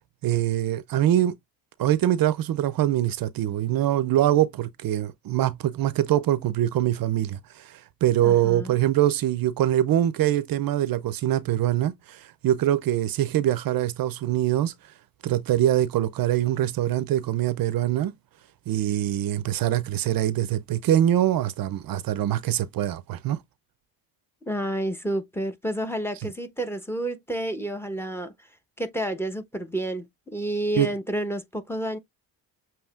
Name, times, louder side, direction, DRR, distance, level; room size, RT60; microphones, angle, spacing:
voice 1, 0.2-1.3 1.8-14.7 15.2-18.1 18.7-23.4 30.8-30.9, right 12 dB, 60° right, 0.5 m, -23 dB
voice 2, 8.2-8.8 24.5-28.3 28.8-32.0, right 1 dB, 5° left, 0.9 m, -30 dB
7.0 x 2.9 x 2.3 m
cardioid pair, 100°, 40 cm